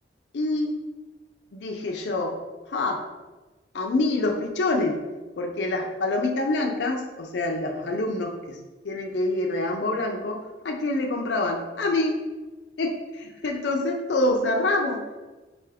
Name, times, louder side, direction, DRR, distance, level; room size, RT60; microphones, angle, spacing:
voice 1, 0.3-0.7 1.5-2.4 2.7-3.0 3.7-5.0 5.4-8.6 8.8-12.2 12.8-15.0, left 2 dB, 80° left, 2 dB, 0.5 m, -26 dB
4.2 x 3.3 x 3.4 m, 1.2 s
head